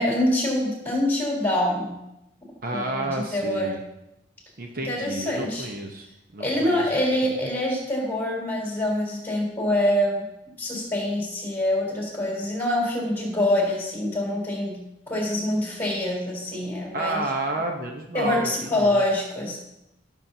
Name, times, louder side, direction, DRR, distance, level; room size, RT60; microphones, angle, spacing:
voice 1, 0.0-2.0 2.7-3.7 4.8-5.7 6.4-10.2 10.6-17.2 18.1-19.6, left 1 dB, 10° left, -4 dB, 3.7 m, -25 dB
voice 2, 2.6-3.8 4.6-6.1 6.3-6.9 16.9-19.0, right 2 dB, 45° right, 2 dB, 0.8 m, -31 dB
16.0 x 7.2 x 2.8 m, 0.89 s
head